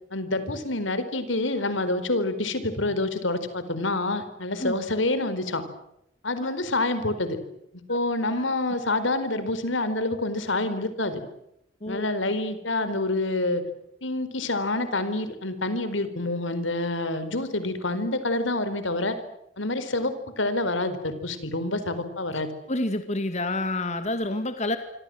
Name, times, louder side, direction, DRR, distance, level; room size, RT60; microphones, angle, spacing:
voice 1, 0.1-5.6 6.2-7.4 7.9-11.2 11.9-13.6 14.0-19.2 19.6-22.5, left 2 dB, 80° left, 12 dB, 4.4 m, -27 dB
voice 2, 22.7-24.8, left 1 dB, 35° left, 8 dB, 2.1 m, -28 dB
26.5 x 26.0 x 7.9 m, 0.80 s
head